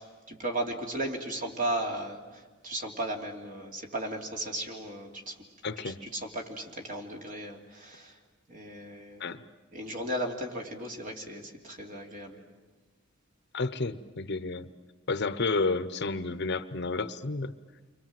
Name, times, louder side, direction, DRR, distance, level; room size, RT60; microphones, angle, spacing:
voice 1, 0.0-5.4 5.8-8.2 8.5-9.2 9.7-12.4, right 1 dB, 40° right, 2 dB, 3.1 m, -36 dB
voice 2, 5.6-6.0 9.2-9.4 13.5-14.7 15.1-17.5, left 3 dB, 55° left, 13 dB, 0.9 m, -31 dB
29.5 x 24.0 x 7.7 m, 1.3 s
head